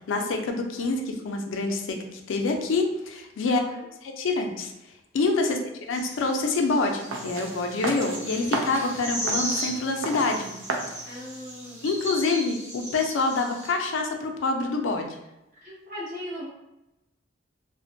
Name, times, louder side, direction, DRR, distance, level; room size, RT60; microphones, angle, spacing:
voice 1, 0.1-3.6 4.0-4.7 5.1-5.6 5.9-10.5 11.8-15.2, left 3 dB, 80° left, 4 dB, 0.4 m, -26 dB
voice 2, 3.5-3.8 5.4-5.7 11.1-11.9 15.5-16.5, left 1 dB, 40° right, -6 dB, 0.9 m, -39 dB
sound 1, 5.9-13.7, right 1 dB, 10° right, 0.9 m, -36 dB
sound 2, 7.1-12.1, right 3 dB, 90° right, 0.4 m, -34 dB
2.4 x 2.1 x 2.5 m, 0.93 s
head